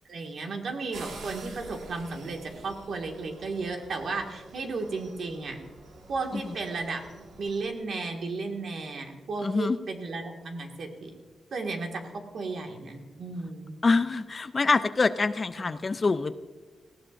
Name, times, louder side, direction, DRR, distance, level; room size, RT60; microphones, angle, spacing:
voice 1, 0.1-5.6 6.1-7.1 7.4-11.1 11.5-13.8 15.6-15.8, right 3 dB, 60° right, 3 dB, 1.8 m, -34 dB
sound 1, 0.9-7.7, right 3 dB, 85° right, 1.8 m, -47 dB
voice 2, 9.4-9.8 13.8-16.4, left 3 dB, 30° left, 12 dB, 0.4 m, -25 dB
19.0 x 16.0 x 2.6 m, 1.3 s
wide cardioid pair, 130°, 0 cm